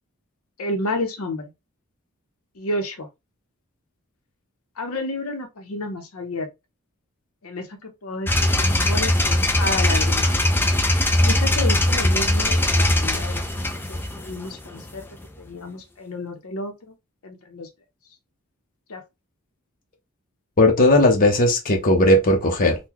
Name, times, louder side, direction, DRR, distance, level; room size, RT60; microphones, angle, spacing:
voice 1, 0.6-1.5 2.6-3.1 4.8-6.5 7.4-10.3 11.2-13.4 13.9-15.0 15.4-16.9 17.2-17.7 18.9-19.0, left 2 dB, 75° left, 0.7 m, -31 dB
sound 1, 8.3-15.3, left 1 dB, 10° left, 0.4 m, -20 dB
voice 2, 20.6-22.8, left 1 dB, 40° left, 0.7 m, -17 dB
3.7 x 2.2 x 2.9 m
head